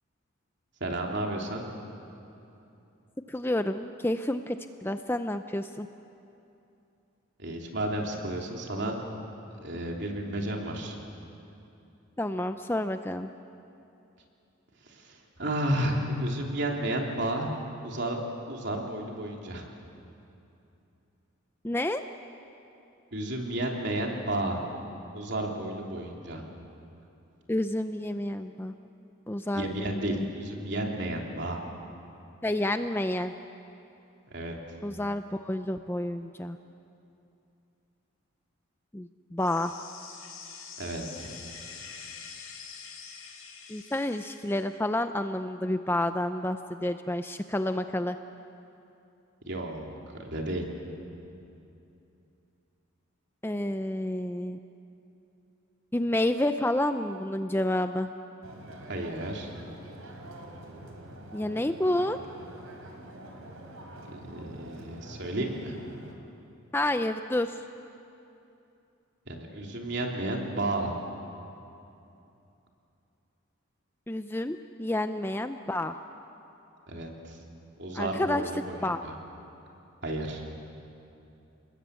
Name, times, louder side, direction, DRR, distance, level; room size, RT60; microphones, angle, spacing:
voice 1, 0.8-1.6 7.4-8.9 9.5-11.0 14.8-17.5 17.8-18.2 18.5-19.7 23.1-24.6 25.1-26.4 29.5-31.6 34.3-34.5 40.8-41.3 49.5-50.6 58.9-59.5 64.0-65.7 69.3-70.9 76.9-77.4 77.8-79.1 80.0-80.4, right 1 dB, 55° right, 0 dB, 3.4 m, -32 dB
voice 2, 3.3-5.9 12.2-13.3 21.6-22.0 27.5-28.7 29.3-30.3 32.4-33.3 34.8-36.6 38.9-39.7 43.7-48.2 53.4-54.6 55.9-58.1 61.3-62.2 66.7-67.6 74.1-75.9 77.9-78.4 78.8-79.0, left 1 dB, 10° left, 8 dB, 0.5 m, -29 dB
sound 1, 39.4-44.6, left 6 dB, 75° left, 5.0 m, -45 dB
sound 2, 58.4-66.1, right 1 dB, 80° right, 3.8 m, -46 dB
28.5 x 21.0 x 8.3 m, 2.8 s
head